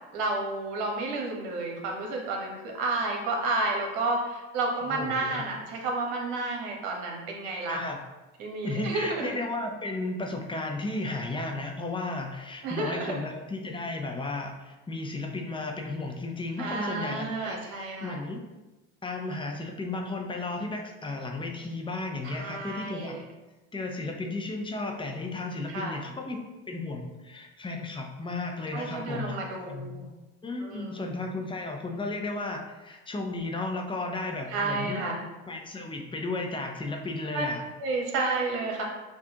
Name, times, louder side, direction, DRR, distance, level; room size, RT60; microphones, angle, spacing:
voice 1, 0.1-7.8 8.4-9.3 12.6-13.2 16.6-18.2 22.2-23.2 25.7-26.0 28.7-30.1 30.6-31.1 34.5-35.2 37.3-37.4 37.8-38.8, right 3 dB, 80° right, 1 dB, 1.1 m, -31 dB
voice 2, 4.9-5.5 7.7-8.0 8.6-18.4 19.0-23.2 23.7-26.4 26.7-29.4 29.6-30.0 30.4-35.0 35.5-37.6, left 2 dB, 15° left, 2 dB, 0.6 m, -34 dB
5.9 x 2.4 x 2.8 m, 1.1 s
supercardioid pair, 95°, 29 cm